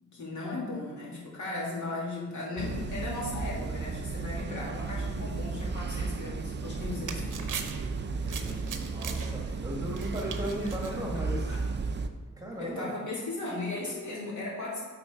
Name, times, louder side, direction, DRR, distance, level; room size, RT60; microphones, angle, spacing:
voice 1, 0.1-7.6 12.6-14.8, left 2 dB, 65° left, -6 dB, 2.5 m, -36 dB
sound 1, 2.6-12.1, right 4 dB, 35° right, 0.4 m, -34 dB
sound 2, 5.3-5.8 6.1-6.2 6.4-6.5 7.2-11.6, left 1 dB, 40° left, 1.2 m, -51 dB
sound 3, 6.6-11.7, right 6 dB, 75° right, 0.7 m, -42 dB
voice 2, 8.3-11.6 12.1-12.9, equal, 10° right, -2 dB, 1.4 m, -37 dB
8.3 x 4.2 x 4.6 m, 1.3 s
wide cardioid pair, 120°, 31 cm